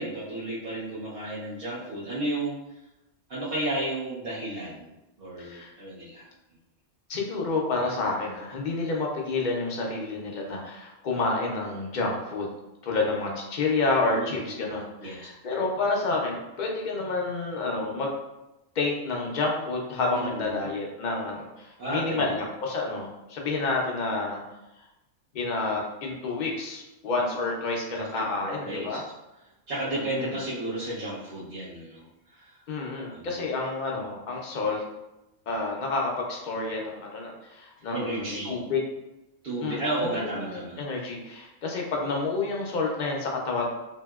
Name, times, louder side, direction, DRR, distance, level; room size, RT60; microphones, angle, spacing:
voice 1, 0.0-2.6 3.3-4.9 5.2-6.3 14.2-14.5 15.0-15.2 20.1-20.5 21.8-22.3 27.9-29.0 29.7-32.1 32.3-32.6 32.9-33.4 37.9-38.6 39.4-40.8, right 1 dB, 55° right, -10 dB, 0.9 m, -33 dB
voice 2, 5.4-5.7 7.1-12.5 12.8-18.2 18.8-24.4 25.3-29.0 29.9-30.4 32.7-34.8 35.5-38.8 39.6-39.8 40.1-43.7, left 3 dB, 55° left, -1 dB, 0.6 m, -29 dB
2.8 x 2.7 x 2.3 m, 0.95 s
omnidirectional pair, 1.2 m